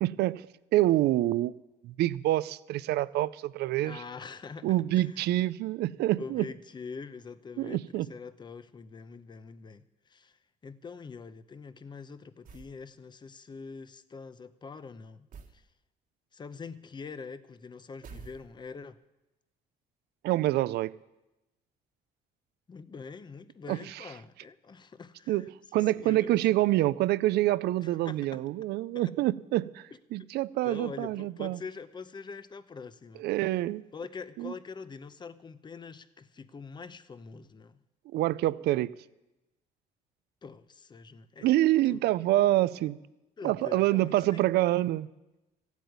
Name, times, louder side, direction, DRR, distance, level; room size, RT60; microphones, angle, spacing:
voice 1, 0.0-0.5 0.7-1.5 1.8-4.0 4.6-6.5 7.6-8.1 20.2-20.9 23.7-24.0 25.3-25.5 25.7-31.6 33.2-33.8 34.4-34.5 38.1-38.9 41.4-43.0 43.4-45.1, right 15 dB, 75° right, 19 dB, 0.5 m, -26 dB
voice 2, 3.8-4.7 4.9-5.2 6.2-10.4 10.6-15.3 15.5-15.6 16.3-19.0 22.7-25.5 25.7-26.6 27.8-28.4 28.9-29.1 30.6-33.2 33.9-37.8 40.4-41.5 41.9-42.0 42.8-42.9 43.4-44.5, left 5 dB, 25° left, 14 dB, 0.8 m, -44 dB
sound 1, 12.4-12.8 15.3-15.6 18.0-18.8, right 5 dB, 55° right, 1.6 m, -48 dB
15.0 x 8.2 x 9.5 m, 0.99 s
cardioid pair, 110°, 17 cm